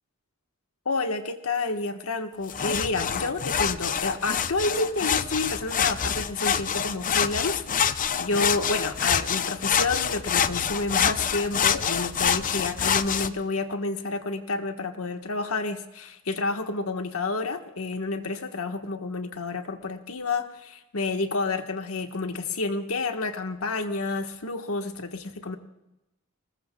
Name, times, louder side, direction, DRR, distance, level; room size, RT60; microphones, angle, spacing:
voice 1, 0.8-25.6, left 3 dB, 75° left, 6 dB, 1.4 m, -29 dB
sound 1, 2.5-13.3, left 7 dB, 40° left, 0.6 m, -26 dB
25.5 x 20.5 x 2.3 m, 0.93 s
head